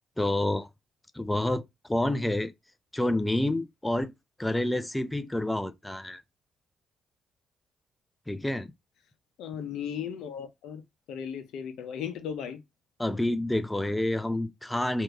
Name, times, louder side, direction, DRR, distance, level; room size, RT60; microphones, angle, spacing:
voice 1, 0.2-0.7 1.1-2.5 2.9-4.1 4.4-6.2 8.3-8.7 13.0-15.0, left 1 dB, 10° left, 0.4 m, -28 dB
voice 2, 9.4-10.8 11.1-12.6, left 8 dB, 85° left, 0.6 m, -36 dB
2.8 x 2.5 x 3.4 m
cardioid pair, 90°, 0 cm